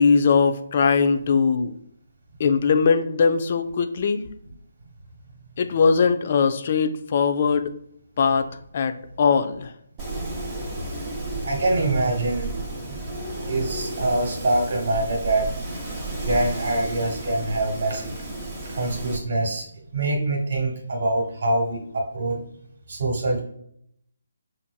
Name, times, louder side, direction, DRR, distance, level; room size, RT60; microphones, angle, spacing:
voice 1, 0.0-1.7 2.4-4.2 5.6-7.7 8.2-9.7, left 5 dB, 45° left, 8 dB, 0.4 m, -20 dB
Wind, 10.0-19.2, right 2 dB, 20° right, 0.9 m, -33 dB
voice 2, 11.4-12.5 12.8-15.5 16.2-18.2 18.7-19.7 19.9-22.4 22.9-23.4, right 2 dB, 60° right, 1 dB, 1.2 m, -25 dB
5.6 x 2.5 x 2.2 m, 0.70 s
figure-of-eight pair, 145°, 0 cm